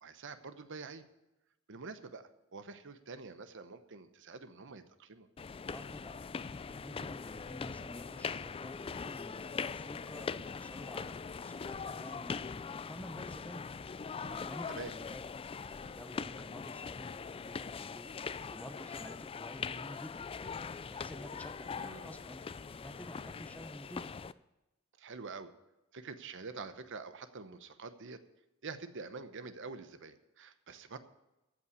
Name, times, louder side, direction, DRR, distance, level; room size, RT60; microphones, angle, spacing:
voice 1, 0.0-1.1 1.7-5.3 14.2-14.9 21.8-22.1 25.0-25.5 25.9-28.2 28.6-31.0, right 4 dB, 60° right, 11 dB, 0.9 m, -46 dB
sound 1, 5.4-24.3, left 5 dB, 25° left, 0.3 m, -42 dB
voice 2, 5.7-13.7 14.4-18.1 18.5-24.1, left 1 dB, 5° left, 9 dB, 0.9 m, -50 dB
15.0 x 5.8 x 8.1 m, 0.97 s
head